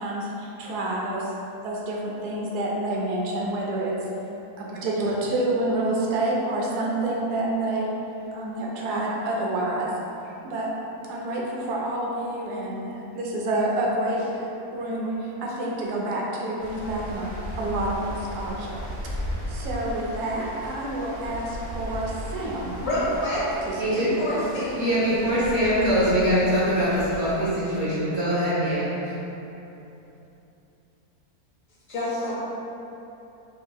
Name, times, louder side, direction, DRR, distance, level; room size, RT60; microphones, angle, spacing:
voice 1, 0.0-1.3 1.6-4.0 4.6-7.9 8.3-9.9 10.2-10.7 11.1-18.8 19.5-22.7 23.7-23.8, right 1 dB, 90° right, -3 dB, 1.2 m, -28 dB
Stream, 16.6-27.3, equal, 25° right, 1.5 m, -36 dB
voice 2, 22.8-23.4 23.9-24.8 31.9-32.3, left 1 dB, 60° left, -8 dB, 1.2 m, -27 dB
voice 3, 23.8-24.1 24.7-28.9, equal, 50° right, -9 dB, 1.1 m, -23 dB
4.4 x 2.9 x 2.2 m, 2.9 s
omnidirectional pair, 1.6 m